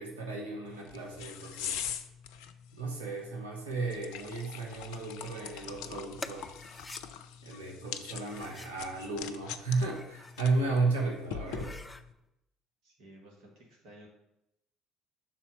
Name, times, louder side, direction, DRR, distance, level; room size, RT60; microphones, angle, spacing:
voice 1, 0.0-1.8 2.7-6.5 7.4-11.8, right 3 dB, 85° right, -1 dB, 1.2 m, -34 dB
sound 1, 0.7-12.1, left 8 dB, 65° left, 0.5 m, -43 dB
sound 2, 6.2-7.0 8.1-8.8 9.7-10.5 10.9-11.0 11.4-12.0, left 2 dB, 15° left, 0.5 m, -46 dB
voice 2, 12.8-14.1, right 1 dB, 60° right, 0 dB, 1.8 m, -54 dB
6.0 x 4.3 x 6.3 m, 0.85 s
figure-of-eight pair, 55°, 0 cm